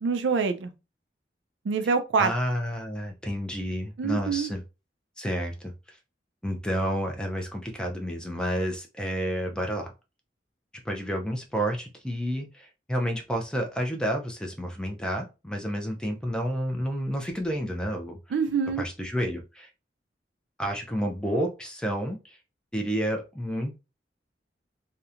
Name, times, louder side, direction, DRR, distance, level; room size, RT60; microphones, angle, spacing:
voice 1, 0.0-0.7 1.6-2.3 4.0-4.5 18.3-18.8, right 5 dB, 80° right, 0.4 m, -25 dB
voice 2, 2.2-4.6 5.2-6.0 6.4-9.9 10.8-18.2 18.8-19.7 20.6-22.4 22.7-23.8, equal, 5° left, 0.4 m, -30 dB
2.8 x 2.1 x 2.4 m
head